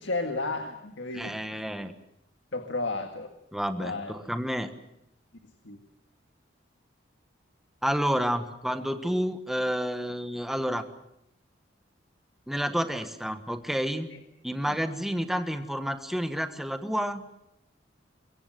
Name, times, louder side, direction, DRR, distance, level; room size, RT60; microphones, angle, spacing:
voice 1, 0.0-1.6 2.5-3.3 3.8-4.1 5.6-5.8 14.1-14.2 14.7-14.8, left 3 dB, 70° left, 6 dB, 1.8 m, -33 dB
voice 2, 1.1-1.9 3.5-4.7 7.8-10.8 12.5-14.1 14.4-17.2, equal, ahead, 8 dB, 1.4 m, -30 dB
24.0 x 23.0 x 7.8 m, 0.81 s
head